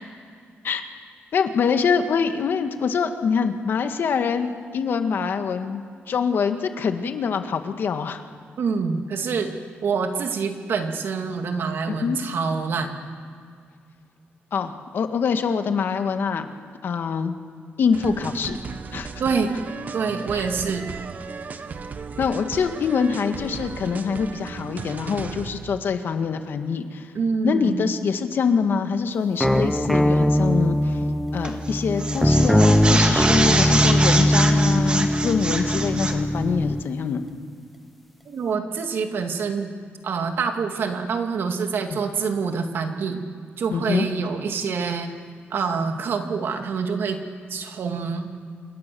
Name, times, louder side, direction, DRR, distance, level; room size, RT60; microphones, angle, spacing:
voice 1, 1.3-8.2 11.9-12.2 14.5-16.5 16.8-17.4 17.8-18.6 18.9-19.1 20.3-20.4 22.2-27.1 27.4-31.0 31.3-37.3 43.7-44.1, left 6 dB, 60° left, 7 dB, 1.7 m, -24 dB
voice 2, 8.6-9.5 9.8-13.0 19.2-19.6 19.9-20.9 27.1-27.8 38.3-39.7 40.0-43.2 43.6-45.1 45.5-47.2 47.5-48.3, right 5 dB, 65° right, 5 dB, 2.4 m, -26 dB
GO Z GO, 17.9-25.8, right 5 dB, 45° right, 1.1 m, -35 dB
sound 1, 29.4-36.9, equal, ahead, 1.0 m, -20 dB
sound 2, 31.4-31.7 32.0-36.2, right 2 dB, 25° right, 2.2 m, -25 dB
27.5 x 27.5 x 7.0 m, 2.2 s
wide cardioid pair, 155°, 4 cm